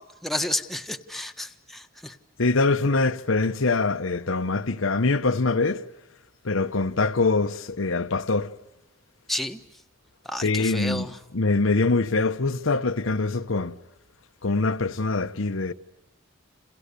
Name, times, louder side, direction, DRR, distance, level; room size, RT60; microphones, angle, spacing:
voice 1, 0.0-2.2 9.3-9.6 10.2-11.2, left 1 dB, ahead, 1.4 m, -31 dB
voice 2, 2.4-5.8 6.4-8.5 10.4-11.1 11.3-13.8 14.4-15.7, left 3 dB, 80° left, 1.0 m, -24 dB
30.0 x 28.5 x 6.9 m
head